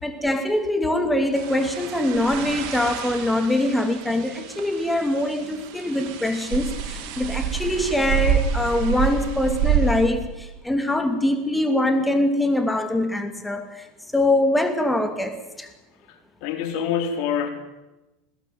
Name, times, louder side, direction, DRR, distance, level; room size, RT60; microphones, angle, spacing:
voice 1, 0.0-13.8 14.1-15.7, left 1 dB, 5° left, 8 dB, 2.5 m, -23 dB
sound 1, 1.3-10.1, right 8 dB, 55° right, 5.6 m, -28 dB
voice 2, 16.4-17.5, left 7 dB, 60° left, 6 dB, 4.2 m, -25 dB
20.5 x 17.5 x 9.3 m, 1.0 s
hypercardioid pair, 90°, 0 cm